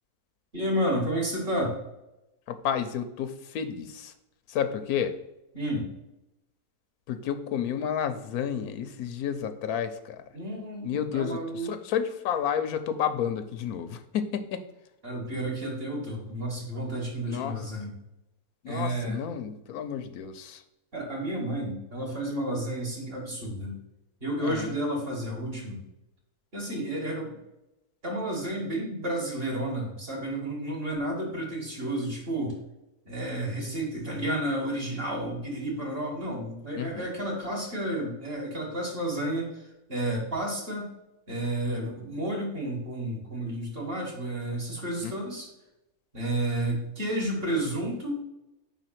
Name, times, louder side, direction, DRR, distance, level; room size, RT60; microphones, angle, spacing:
voice 1, 0.5-1.7 5.5-5.9 10.3-11.7 15.0-17.9 18.7-19.2 20.9-23.8 24.2-25.8 26.5-27.4 28.0-32.6 33.1-40.9 41.3-45.5 46.1-48.2, right 1 dB, 40° right, -2 dB, 2.2 m, -31 dB
voice 2, 2.5-4.1 4.5-5.1 7.1-10.3 10.8-14.6 17.3-17.7 18.6-20.6 24.4-24.7 36.8-37.1 45.0-45.1, left 8 dB, 90° left, 9 dB, 1.2 m, -31 dB
5.1 x 4.1 x 5.8 m, 0.91 s
omnidirectional pair, 1.5 m